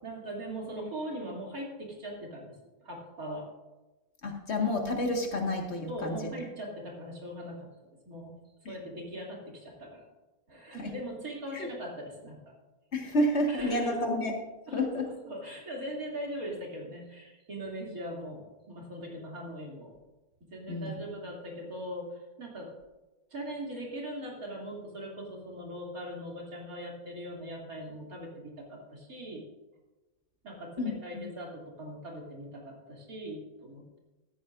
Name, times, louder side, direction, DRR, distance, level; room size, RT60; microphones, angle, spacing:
voice 1, 0.0-2.6 2.8-3.5 5.9-8.4 8.7-10.0 10.5-12.4 13.5-14.1 14.7-19.9 20.5-22.7 23.3-29.4 30.4-34.0, equal, 90° right, -2 dB, 3.4 m, -40 dB
voice 2, 4.2-6.2 10.8-10.9 11.5-11.7 12.9-14.3 14.7-15.1 20.7-21.0 30.8-31.2, left 1 dB, 50° left, 2 dB, 2.0 m, -30 dB
15.0 x 13.5 x 2.6 m, 1.1 s
omnidirectional pair, 1.5 m